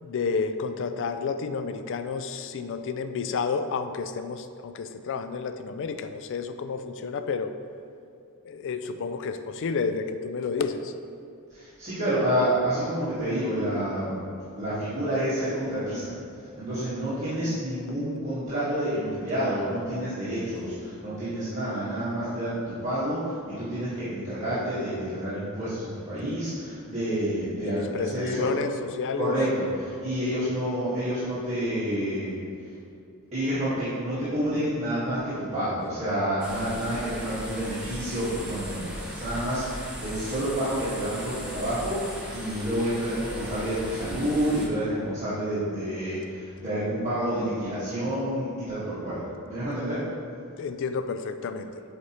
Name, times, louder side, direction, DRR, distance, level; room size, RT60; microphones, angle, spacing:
voice 1, 0.0-7.5 8.4-10.9 27.6-29.4 50.6-51.8, left 5 dB, 55° left, 9 dB, 0.3 m, -30 dB
voice 2, 11.5-14.1 14.6-16.2 16.5-28.5 29.2-32.3 33.3-49.2 49.5-50.0, equal, 30° right, -14 dB, 1.5 m, -29 dB
sound 1, 36.4-44.7, equal, 5° right, 0.8 m, -38 dB
7.8 x 4.2 x 2.9 m, 2.5 s
head